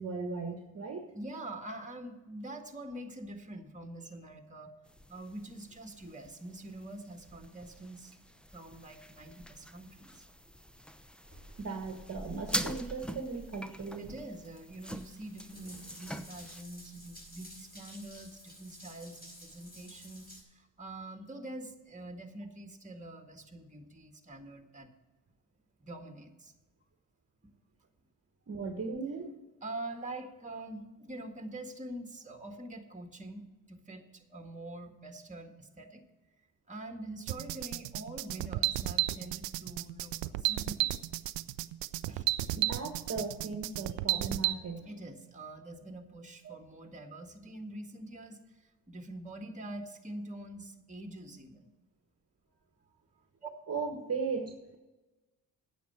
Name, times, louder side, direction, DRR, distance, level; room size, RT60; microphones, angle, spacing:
voice 1, 0.0-1.1 11.6-14.1 28.5-29.3 42.6-44.9 46.4-46.6 53.7-54.5, right 4 dB, 35° right, 5 dB, 1.4 m, -37 dB
voice 2, 1.1-4.7 5.1-8.2 8.5-10.2 14.0-24.9 25.8-26.5 29.6-36.0 36.7-41.0 42.1-42.3 44.9-51.7 53.4-53.5, right 1 dB, 15° right, 5 dB, 1.7 m, -45 dB
sound 1, 4.9-16.6, equal, ahead, 0.7 m, -44 dB
Water tap faucet / Bathtub (filling or washing) / Drip, 11.2-20.4, equal, 20° left, 4.6 m, -52 dB
sound 2, 37.3-44.5, right 17 dB, 80° right, 0.5 m, -32 dB
9.3 x 7.0 x 8.8 m, 1.1 s
supercardioid pair, 60°, 42 cm